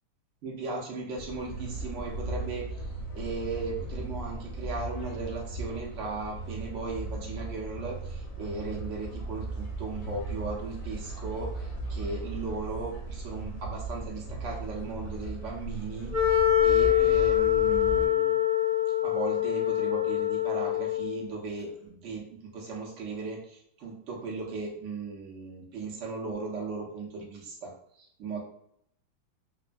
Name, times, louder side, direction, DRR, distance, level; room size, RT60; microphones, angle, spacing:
voice 1, 0.4-2.9 3.1-18.4 19.0-22.2 22.5-28.4, right 3 dB, 80° right, -3 dB, 0.6 m, -37 dB
sound 1, 1.1-18.1, right 2 dB, 65° left, 0.9 m, -37 dB
Wind instrument woodwind instrument, 16.1-21.2, left 12 dB, ahead, 0.6 m, -24 dB
3.1 x 2.1 x 2.5 m, 0.70 s
omnidirectional pair, 2.1 m